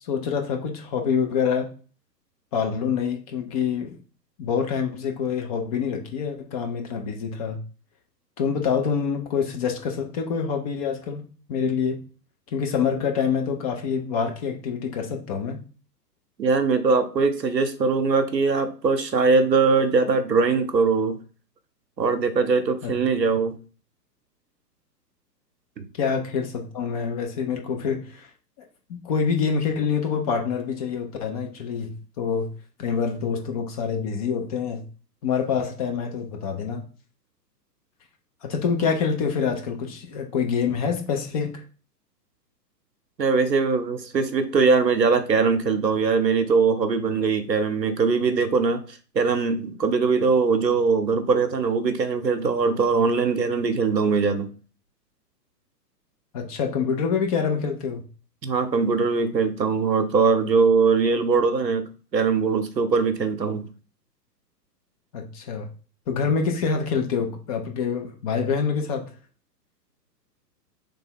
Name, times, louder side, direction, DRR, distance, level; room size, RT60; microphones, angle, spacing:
voice 1, 0.1-1.7 2.5-4.0 4.4-7.6 8.4-12.0 12.5-15.6 22.8-22.9 26.0-28.3 28.9-32.5 32.8-34.8 35.2-36.9 38.4-41.6 56.3-58.0 65.1-65.7 66.1-69.1, left 6 dB, 25° left, 0.5 m, -26 dB
voice 2, 16.4-21.2 22.0-23.6 43.2-48.8 49.1-54.5 58.4-63.6, right 4 dB, 90° right, 0.9 m, -21 dB
3.4 x 3.4 x 4.3 m
figure-of-eight pair, 110°, 49 cm